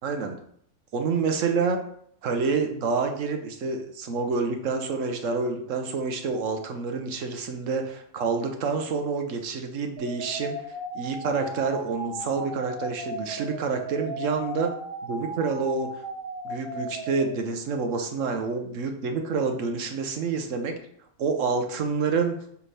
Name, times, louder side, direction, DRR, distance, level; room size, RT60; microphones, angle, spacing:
voice 1, 0.0-0.4 0.9-1.8 2.2-10.5 10.9-14.7 15.0-15.9 16.4-20.7 21.2-22.4, right 4 dB, 75° right, 5 dB, 1.2 m, -28 dB
sound 1, 10.0-17.3, right 2 dB, 50° right, 1.2 m, -36 dB
5.8 x 4.8 x 3.3 m, 0.65 s
omnidirectional pair, 1.3 m